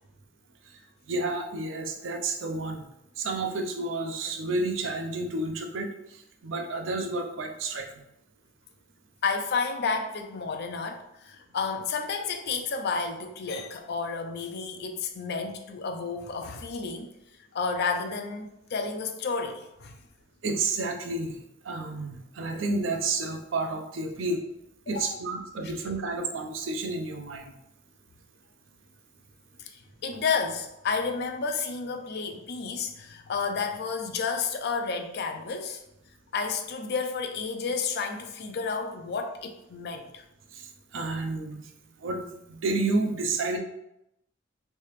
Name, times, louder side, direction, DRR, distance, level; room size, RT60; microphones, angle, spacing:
voice 1, 1.1-2.9 3.2-8.0 20.4-21.4 21.6-24.4 24.9-27.5 40.5-41.6 42.0-43.6, right 3 dB, 70° right, 4 dB, 0.5 m, -30 dB
voice 2, 9.2-17.1 17.5-19.9 24.9-25.2 29.6-35.8 36.3-40.2, left 5 dB, 55° left, 5 dB, 0.4 m, -31 dB
3.3 x 2.8 x 3.1 m, 0.84 s
head